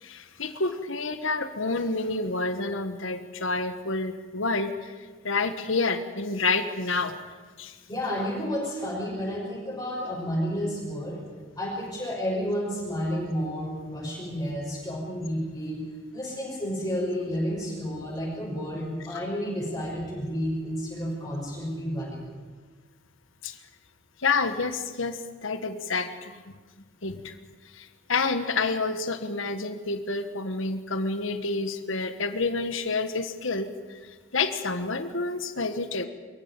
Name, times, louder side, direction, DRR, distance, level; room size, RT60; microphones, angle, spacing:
voice 1, 0.0-4.9 5.2-7.2 7.6-7.8 19.1-19.2 23.4-23.6 24.2-26.6 27.0-27.3 27.7-36.1, left 3 dB, 70° left, 8 dB, 1.5 m, -29 dB
voice 2, 7.9-11.2 11.6-15.8 16.1-22.3, equal, 20° left, -4 dB, 5.9 m, -31 dB
24.5 x 14.5 x 9.1 m, 1.4 s
head